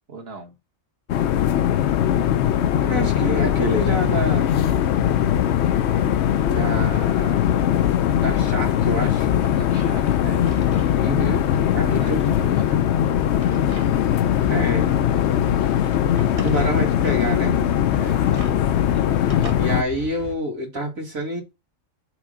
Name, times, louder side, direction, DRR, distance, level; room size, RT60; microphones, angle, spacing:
voice 1, 0.1-0.6 9.4-10.4 11.8-12.9 16.6-16.9 18.0-18.4, right 2 dB, 50° right, 1.7 m, -39 dB
sound 1, 1.1-19.8, left 10 dB, 65° left, 0.8 m, -20 dB
voice 2, 2.8-4.5 6.4-7.4 8.2-9.3 11.0-11.5 11.7-12.3 14.5-15.0 16.4-17.6 19.6-21.4, right 1 dB, 90° right, 2.3 m, -27 dB
sound 2, 3.8-20.3, left 2 dB, 90° left, 1.5 m, -36 dB
Drawer open or close, 9.6-11.0 11.3-11.4 12.5-14.2 14.6-14.7 15.5-16.6 17.8-19.5, right 3 dB, 30° right, 0.9 m, -43 dB
6.1 x 3.8 x 5.0 m
omnidirectional pair, 1.4 m